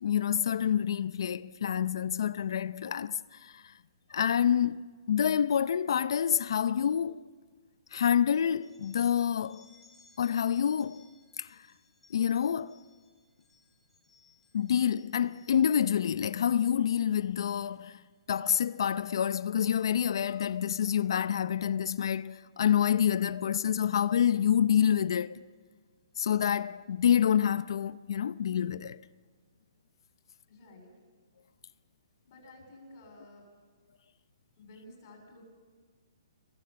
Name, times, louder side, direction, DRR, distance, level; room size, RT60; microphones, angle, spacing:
voice 1, 0.0-3.7 4.1-7.2 7.9-9.7 10.2-11.0 11.4-11.6 12.1-12.8 14.5-18.0 18.3-25.4 26.2-29.0, left 9 dB, 65° left, 0.6 m, -27 dB
sound 1, 8.6-15.9 16.4-16.8 17.1-17.5 17.9-19.3 20.2-20.5 21.4-21.6 22.5-22.6 23.0-23.1 23.7-23.9, left 4 dB, 5° left, 4.7 m, -64 dB
voice 2, 30.5-31.0 32.2-33.5 34.6-35.4, left 1 dB, 40° left, 7.4 m, -53 dB
28.0 x 22.5 x 7.0 m
hypercardioid pair, 160°, 3 cm